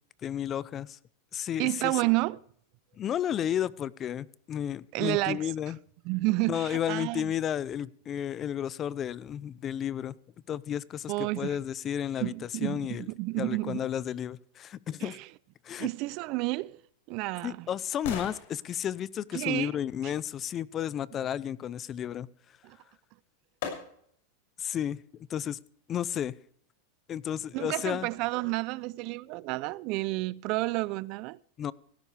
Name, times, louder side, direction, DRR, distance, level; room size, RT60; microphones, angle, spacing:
voice 1, 0.2-1.0 1.3-2.0 3.0-5.8 6.5-10.1 10.5-12.3 12.6-13.1 13.4-15.2 15.6-15.9 17.4-22.3 24.6-25.0 25.3-25.6 25.9-26.3 27.1-28.1 31.6-31.7, left 10 dB, 30° left, 0.6 m, -32 dB
voice 2, 1.6-2.4 4.9-5.5 6.0-7.3 11.1-11.6 12.2-13.9 15.0-15.2 15.8-16.8 17.1-17.7 19.3-19.7 22.6-22.8 27.5-31.4, right 22 dB, 50° right, 0.5 m, -30 dB
sound 1, 16.6-20.6 22.7-22.8 23.6-24.3 24.8-24.9, left 6 dB, 65° left, 6.6 m, -43 dB
17.5 x 15.5 x 3.4 m
supercardioid pair, 135°, 0 cm